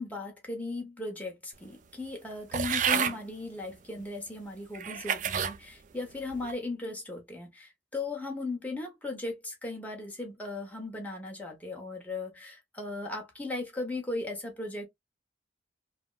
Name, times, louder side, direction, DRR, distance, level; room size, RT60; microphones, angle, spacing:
voice 1, 0.0-14.8, left 2 dB, 10° left, 1.1 m, -37 dB
sound 1, 2.5-3.2 4.0-4.1 4.7-5.6 6.1-6.5, right 7 dB, 45° right, 0.4 m, -30 dB
3.4 x 2.1 x 2.4 m
head